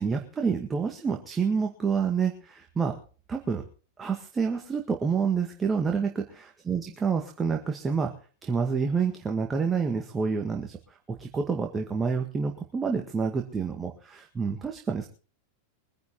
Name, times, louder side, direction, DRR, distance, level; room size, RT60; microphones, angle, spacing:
voice 1, 0.0-3.0 3.3-3.6 4.0-6.2 6.7-8.1 8.4-10.8 11.1-15.1, right 5 dB, 15° right, 3 dB, 1.9 m, -28 dB
23.5 x 10.5 x 3.9 m, 0.39 s
figure-of-eight pair, 90°, 0 cm